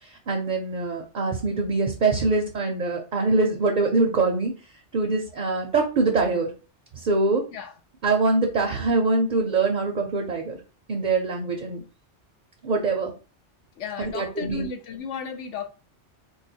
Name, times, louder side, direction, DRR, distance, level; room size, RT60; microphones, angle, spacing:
voice 1, 0.3-4.5 4.9-6.5 7.0-7.4 8.0-10.6 10.9-11.8 12.6-13.1 14.0-14.7, right 3 dB, 50° right, 0.6 m, -23 dB
voice 2, 13.8-15.7, left 6 dB, 85° left, 1.0 m, -34 dB
4.7 x 2.2 x 2.7 m
omnidirectional pair, 1.2 m